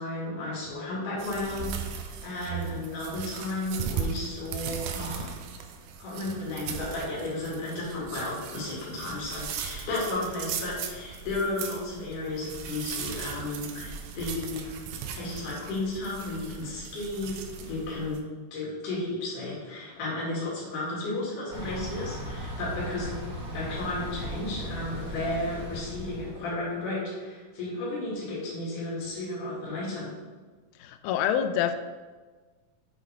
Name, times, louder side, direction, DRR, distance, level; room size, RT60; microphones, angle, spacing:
voice 1, 0.0-5.3 6.0-14.8 15.1-18.2 18.5-23.2 23.5-30.1, left 2 dB, 60° left, -6 dB, 3.7 m, -33 dB
sound 1, 1.2-18.2, right 7 dB, 80° right, 2.4 m, -38 dB
Thunder / Bicycle, 21.5-26.5, equal, 65° right, 0.8 m, -37 dB
voice 2, 30.8-31.7, left 9 dB, 90° left, 9 dB, 2.4 m, -26 dB
8.1 x 5.6 x 3.5 m, 1.4 s
omnidirectional pair, 4.2 m